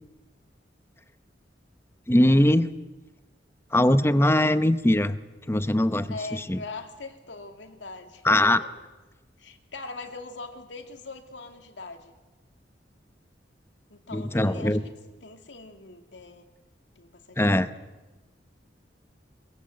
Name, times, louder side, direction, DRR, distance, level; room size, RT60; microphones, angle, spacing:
voice 1, 2.1-2.7 3.7-5.2 5.5-6.6 8.2-8.6 14.1-14.8 17.4-17.7, left 1 dB, 15° left, 12 dB, 0.8 m, -21 dB
voice 2, 6.1-8.7 9.4-12.2 13.9-16.4 17.0-17.7, left 3 dB, 80° left, 5 dB, 2.5 m, -41 dB
23.0 x 21.0 x 8.0 m, 1.2 s
head